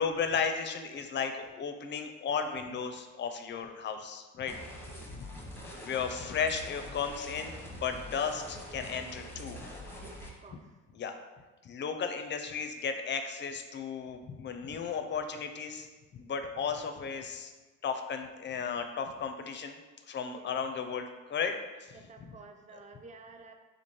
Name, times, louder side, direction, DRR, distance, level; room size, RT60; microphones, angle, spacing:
voice 1, 0.0-4.5 5.8-9.7 10.9-11.1 11.6-15.9 16.1-17.5 17.8-19.8 20.1-21.5 21.8-21.9, left 6 dB, 40° left, 7 dB, 0.4 m, -34 dB
sound 1, 4.5-10.3, left 1 dB, 5° left, 0.7 m, -44 dB
voice 2, 10.0-10.8 20.3-20.5 21.9-23.5, right 3 dB, 25° right, 5 dB, 0.4 m, -52 dB
3.0 x 2.5 x 4.3 m, 1.2 s
cardioid pair, 90°, 30 cm